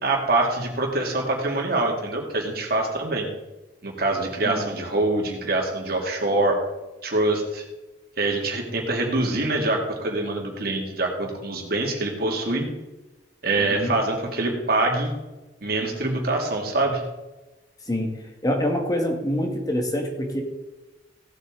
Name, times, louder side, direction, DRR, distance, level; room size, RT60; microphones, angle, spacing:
voice 1, 0.0-3.3 3.8-6.6 7.0-7.6 8.2-12.7 13.4-15.1 15.6-17.0, right 2 dB, 60° right, 1 dB, 2.4 m, -24 dB
voice 2, 13.6-14.0 17.9-18.1 18.4-20.4, equal, 20° left, 3 dB, 1.6 m, -25 dB
16.5 x 8.1 x 3.8 m, 1.1 s
head